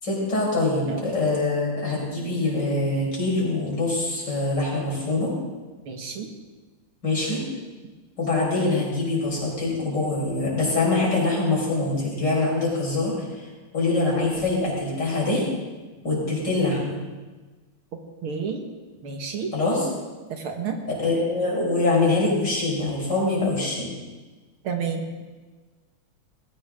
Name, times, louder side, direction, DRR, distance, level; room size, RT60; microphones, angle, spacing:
voice 1, 0.0-5.3 7.0-7.4 8.2-13.5 13.7-15.4 16.0-17.0 19.5-19.9 21.0-23.9, left 2 dB, 55° left, -5 dB, 6.0 m, -24 dB
voice 2, 5.9-6.3 18.2-18.6 19.0-19.5 20.3-20.8 24.6-25.0, right 6 dB, 80° right, 4 dB, 2.5 m, -30 dB
19.0 x 16.5 x 3.8 m, 1.3 s
omnidirectional pair, 2.3 m